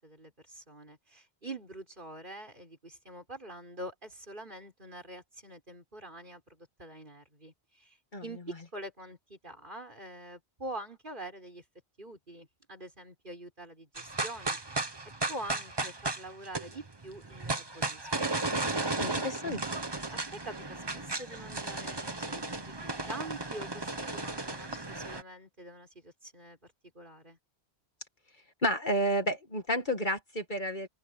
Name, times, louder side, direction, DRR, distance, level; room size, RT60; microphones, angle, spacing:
voice 1, 0.0-11.6 12.0-14.9 15.3-18.3 20.4-22.7 23.1-27.4, right 1 dB, 50° right, 5.6 m, -45 dB
sound 1, 14.0-25.2, right 2 dB, 25° right, 1.2 m, -35 dB
voice 2, 19.0-19.6 28.6-30.9, equal, 45° left, 2.2 m, -30 dB
open air
omnidirectional pair, 1.1 m